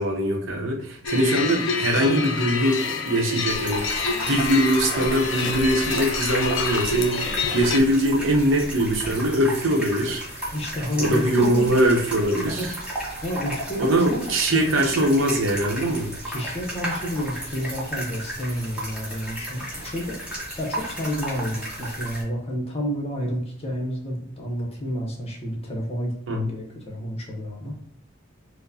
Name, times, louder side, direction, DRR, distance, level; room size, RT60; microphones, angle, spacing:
voice 1, 0.0-10.2 11.0-12.8 13.8-16.1 26.3-26.6, right 1 dB, 75° right, 2 dB, 0.7 m, -22 dB
sound 1, 1.0-7.8, left 4 dB, 65° left, 0.5 m, -27 dB
sound 2, 3.5-22.2, right 1 dB, 5° right, 1.0 m, -33 dB
voice 2, 10.5-11.7 12.6-12.7 13.2-14.7 15.8-15.9 16.2-27.7, equal, 30° left, 0 dB, 0.8 m, -30 dB
4.6 x 2.1 x 2.6 m, 0.64 s
head